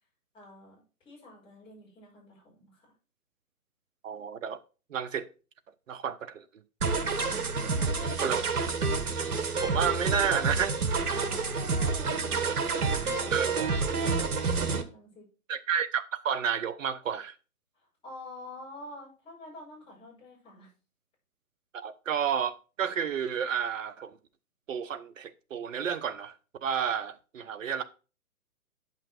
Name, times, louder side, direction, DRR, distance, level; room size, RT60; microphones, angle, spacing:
voice 1, 0.3-2.9 7.7-8.5 11.1-12.5 13.1-15.3 17.7-20.7, left 2 dB, 10° left, 5.7 m, -47 dB
voice 2, 4.0-4.6 4.9-5.3 5.9-6.4 8.2-8.4 9.6-10.8 13.3-13.7 15.5-17.3 21.7-24.2 24.7-26.3 26.6-27.8, right 7 dB, 55° right, 1.0 m, -31 dB
sound 1, 6.8-14.8, right 4 dB, 75° right, 1.6 m, -29 dB
8.9 x 5.9 x 4.4 m
hypercardioid pair, 145°, 45 cm